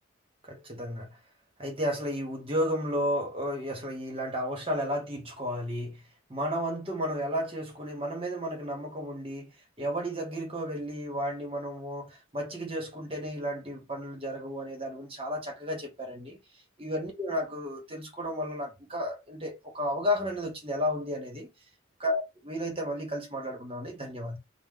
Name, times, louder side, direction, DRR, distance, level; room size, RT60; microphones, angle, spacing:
voice 1, 0.5-1.2 1.6-6.0 6.3-9.5 9.8-16.4 16.8-21.5 22.0-24.4, equal, 25° right, 0.9 m, -33 dB
3.0 x 2.0 x 3.6 m
head